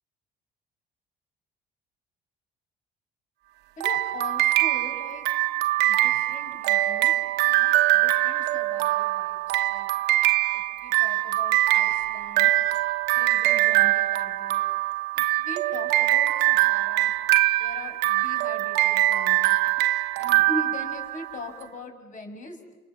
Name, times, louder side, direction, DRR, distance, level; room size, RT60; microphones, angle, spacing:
voice 1, 3.8-5.3 5.8-9.9 10.5-12.5 13.1-14.6 15.1-17.1 17.6-19.6 20.1-22.7, left 2 dB, 50° left, 6 dB, 6.2 m, -41 dB
sound 1, 3.8-21.5, right 16 dB, 90° right, 1.0 m, -23 dB
29.5 x 27.5 x 7.4 m, 1.1 s
cardioid pair, 110°, 17 cm